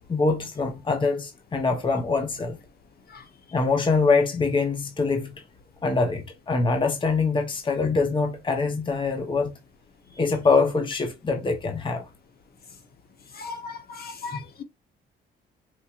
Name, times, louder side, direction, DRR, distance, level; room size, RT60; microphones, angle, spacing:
voice 1, 0.1-2.6 3.5-5.4 5.8-9.6 10.2-12.1 14.3-14.4, left 4 dB, 25° left, 0.8 m, -24 dB
voice 2, 13.4-14.6, left 4 dB, 50° left, 1.0 m, -37 dB
4.4 x 2.7 x 2.4 m
cardioid pair, 90°, 20 cm